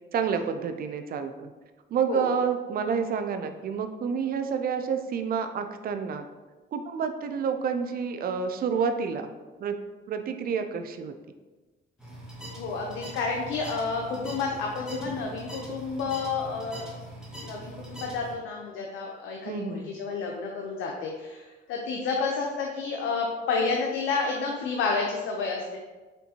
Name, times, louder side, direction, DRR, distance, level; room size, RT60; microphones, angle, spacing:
voice 1, 0.1-1.5 1.9-6.3 6.7-9.3 9.6-9.8 10.1-11.1 19.5-19.9, right 6 dB, 50° right, 7 dB, 0.4 m, -29 dB
sound 1, 12.0-18.3, right 1 dB, 5° right, 1.3 m, -42 dB
voice 2, 12.5-16.9 17.4-25.8, left 4 dB, 90° left, -1 dB, 0.5 m, -30 dB
4.4 x 3.3 x 2.7 m, 1.2 s
cardioid pair, 90°, 20 cm